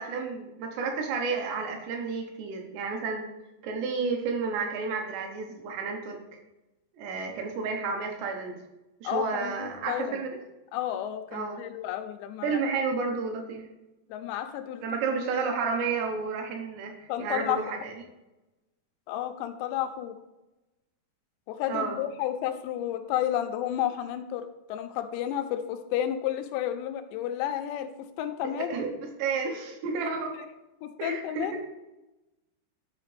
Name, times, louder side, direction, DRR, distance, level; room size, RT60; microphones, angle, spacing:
voice 1, 0.0-3.2 3.6-6.4 6.9-8.6 9.0-10.4 11.3-11.6 12.4-13.7 14.8-17.9 21.7-22.0 28.6-28.9 29.2-30.4 31.0-31.6, right 4 dB, 75° right, 3 dB, 3.1 m, -31 dB
voice 2, 9.0-10.2 10.7-12.7 14.1-14.9 17.1-17.8 19.1-20.2 21.5-28.8 30.3-30.5 30.8-31.6, left 11 dB, 85° left, 7 dB, 2.8 m, -32 dB
10.5 x 4.9 x 3.3 m, 0.99 s
omnidirectional pair, 5.1 m